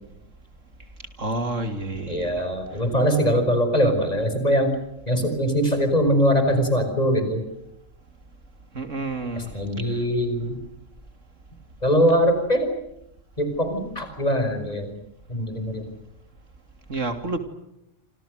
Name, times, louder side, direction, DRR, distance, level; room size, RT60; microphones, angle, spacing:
voice 1, 1.2-2.4 8.7-9.6 9.9-10.0 16.9-17.4, right 2 dB, 75° right, 8 dB, 3.4 m, -29 dB
voice 2, 2.1-4.7 5.1-7.4 9.4-10.6 11.8-12.7 13.4-14.9 15.3-15.9, equal, 30° left, 7 dB, 5.8 m, -22 dB
28.0 x 26.5 x 6.6 m, 0.84 s
omnidirectional pair, 1.3 m